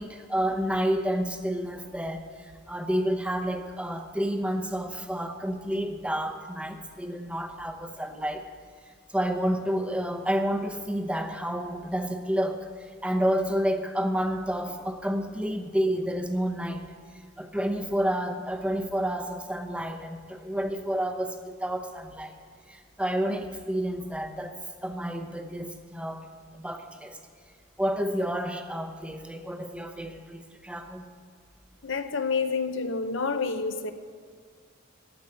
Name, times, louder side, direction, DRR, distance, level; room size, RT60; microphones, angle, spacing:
voice 1, 0.0-8.5 9.1-16.9 17.4-22.3 22.7-24.6 24.8-26.3 26.5-27.2 27.8-31.1, equal, 5° right, 0.8 m, -30 dB
voice 2, 31.8-33.9, left 4 dB, 60° left, 0.8 m, -28 dB
15.0 x 5.5 x 9.7 m
head